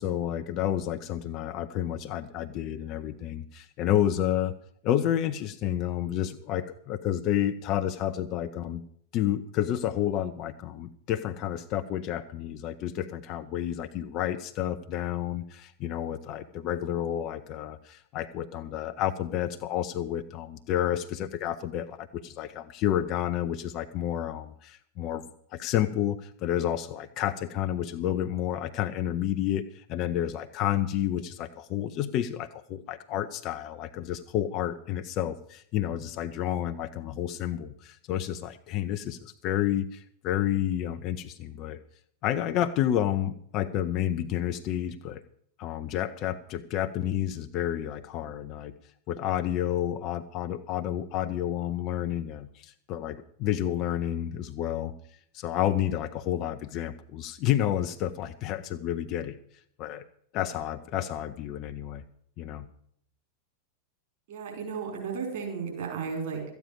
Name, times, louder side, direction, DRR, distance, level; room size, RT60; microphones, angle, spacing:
voice 1, 0.0-4.5 4.8-8.8 9.1-25.3 25.5-41.8 42.2-45.2 45.6-48.7 49.1-54.9 55.3-59.4 59.8-60.0 60.3-62.0 62.4-62.7, left 11 dB, 40° left, 8 dB, 0.6 m, -30 dB
voice 2, 64.3-66.4, right 5 dB, 50° right, 1 dB, 4.7 m, -34 dB
13.0 x 9.3 x 7.0 m, 0.66 s
figure-of-eight pair, 90°, 0 cm